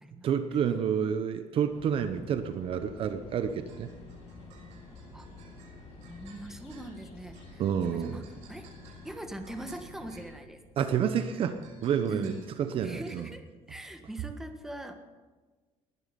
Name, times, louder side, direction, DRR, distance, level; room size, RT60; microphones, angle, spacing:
voice 1, 0.2-3.9 7.6-8.2 10.8-13.3, right 8 dB, 50° right, 10 dB, 0.9 m, -29 dB
sound 1, 1.7-10.2, left 3 dB, 60° left, 5.8 m, -49 dB
sound 2, 3.3-13.2, right 4 dB, 75° right, 6.1 m, -57 dB
voice 2, 6.1-8.7 9.0-10.6 12.1-12.3 12.8-14.9, right 1 dB, 5° right, 6 dB, 1.4 m, -42 dB
19.5 x 11.5 x 5.3 m, 1.3 s
cardioid pair, 140°, 12 cm